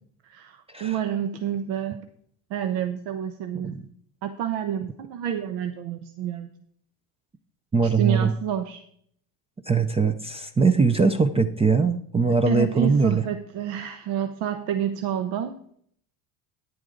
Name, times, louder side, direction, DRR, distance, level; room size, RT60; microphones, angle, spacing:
voice 1, 0.2-2.1 2.5-3.8 4.2-6.5 7.8-8.8 12.4-15.6, right 9 dB, 75° right, 8 dB, 1.0 m, -29 dB
voice 2, 7.7-8.3 9.7-13.2, right 4 dB, 15° right, 10 dB, 0.4 m, -21 dB
10.5 x 10.0 x 3.8 m, 0.66 s
cardioid pair, 120°, 43 cm